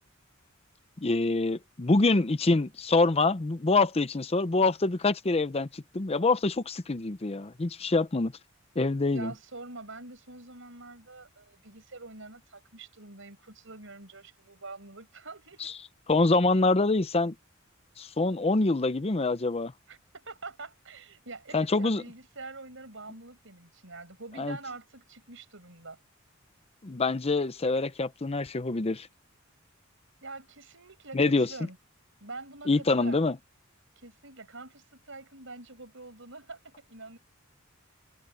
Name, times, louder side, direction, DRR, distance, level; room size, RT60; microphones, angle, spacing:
voice 1, 1.0-8.3 8.8-9.3 15.6-15.7 16.1-17.3 18.0-19.7 21.5-22.0 24.4-24.6 26.8-29.1 31.1-31.5 32.7-33.4, left 3 dB, 30° left, 0.6 m, -25 dB
voice 2, 9.1-15.7 19.9-26.0 30.2-31.8 32.2-33.3 34.0-37.2, right 3 dB, 65° right, 6.6 m, -45 dB
open air
head